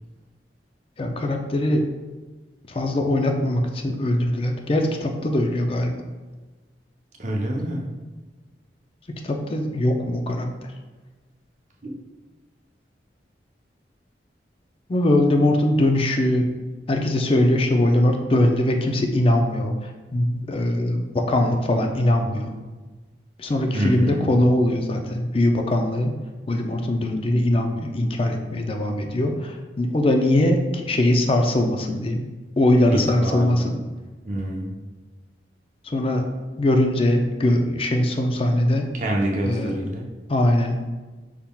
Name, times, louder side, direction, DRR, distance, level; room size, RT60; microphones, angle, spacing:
voice 1, 1.0-1.9 2.7-6.0 9.2-10.7 14.9-16.5 16.9-22.5 23.4-26.1 26.5-32.3 32.6-33.7 35.8-36.2 36.6-38.9 39.4-39.8 40.3-40.8, left 1 dB, 30° left, 4 dB, 0.4 m, -21 dB
voice 2, 7.2-7.9 11.8-11.9 23.7-24.3 32.9-33.7 34.2-34.7 38.9-40.1, right 1 dB, 45° right, -1 dB, 0.7 m, -26 dB
5.7 x 3.6 x 2.3 m, 1.2 s
head